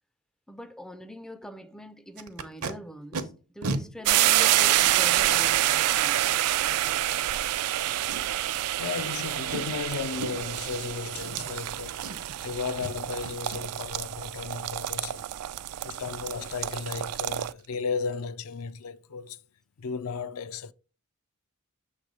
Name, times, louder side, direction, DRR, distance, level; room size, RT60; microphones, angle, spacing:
voice 1, 0.5-6.2 6.6-7.2, equal, ahead, 0.3 m, -43 dB
Packing tape duct tape, 2.2-2.7 3.1-3.2 3.6-3.8 4.6-4.7 8.0-8.5 8.9-9.1 9.4-9.7 10.1-10.5 11.1-11.7 12.0-12.4 12.8-13.0 13.2-13.6 16.7-16.8 17.1-17.2 17.6-17.7 18.0-18.3 18.5-18.6, right 2 dB, 70° right, 0.8 m, -35 dB
sound 1, 4.1-17.5, right 14 dB, 90° right, 0.3 m, -27 dB
voice 2, 8.8-12.1 12.4-15.3 15.8-19.4 19.8-20.7, left 5 dB, 70° left, 0.4 m, -34 dB
6.8 x 3.2 x 5.1 m
head